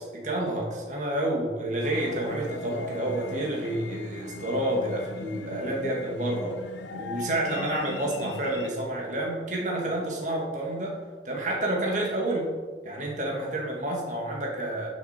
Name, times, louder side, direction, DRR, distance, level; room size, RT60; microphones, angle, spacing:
voice 1, 0.0-6.5 6.9-11.0 11.2-12.5 12.8-14.9, right 1 dB, 45° right, -2 dB, 1.9 m, -29 dB
sound 1, 1.8-8.7, left 3 dB, 85° left, 0.7 m, -40 dB
10.0 x 6.5 x 4.4 m, 1.4 s
head